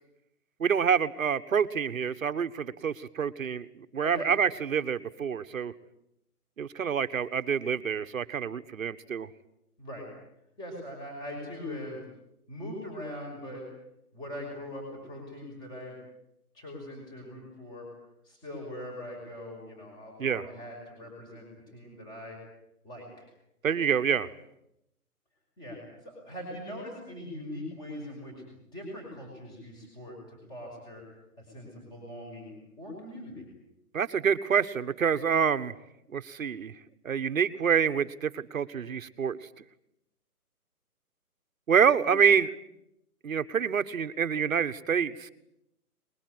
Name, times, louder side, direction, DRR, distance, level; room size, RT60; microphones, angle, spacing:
voice 1, 0.6-5.7 6.6-9.3 20.2-20.4 23.6-24.3 33.9-35.7 36.1-36.7 37.0-39.4 41.7-42.5 43.2-45.3, right 7 dB, 60° right, 11 dB, 1.5 m, -27 dB
voice 2, 10.6-12.0 12.5-13.7 14.1-16.0 16.5-17.9 18.2-22.4 22.8-23.3 25.6-25.8 26.0-31.0 31.4-33.5 42.0-42.1, left 1 dB, 10° left, 1 dB, 5.8 m, -41 dB
24.0 x 22.0 x 9.6 m, 0.82 s
hypercardioid pair, 175°, 45 cm